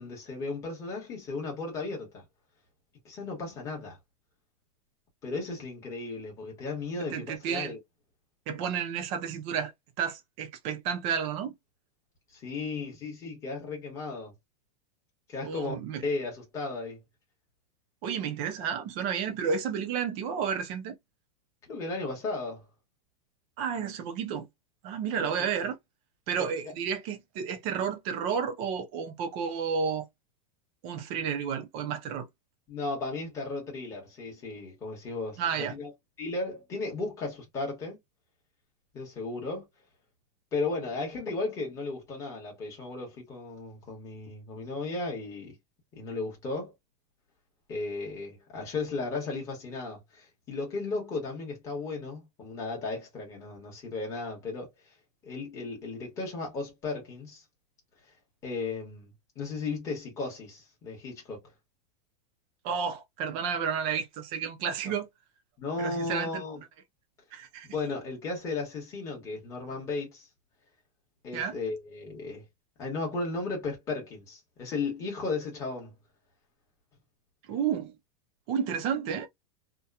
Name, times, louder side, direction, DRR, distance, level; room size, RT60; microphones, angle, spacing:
voice 1, 0.0-2.2 3.0-4.0 5.2-7.8 12.3-14.3 15.3-15.7 16.0-17.0 21.7-22.6 25.2-25.5 26.4-26.7 32.7-35.9 36.2-38.0 38.9-39.7 40.5-45.6 45.9-46.7 47.7-54.7 55.2-57.4 58.4-61.4 64.8-64.9 65.6-66.6 67.6-70.3 71.2-72.4 72.8-75.9, left 3 dB, 15° left, 1.1 m, -35 dB
voice 2, 7.1-7.7 8.5-9.7 10.0-11.5 15.4-16.0 18.0-21.0 23.6-24.5 24.8-25.8 26.3-30.1 30.8-32.3 35.4-35.8 62.6-65.1 65.8-66.4 67.3-67.7 71.3-71.6 77.5-77.9 78.5-79.3, right 7 dB, 25° right, 0.5 m, -31 dB
2.9 x 2.2 x 2.2 m
supercardioid pair, 180°, 21 cm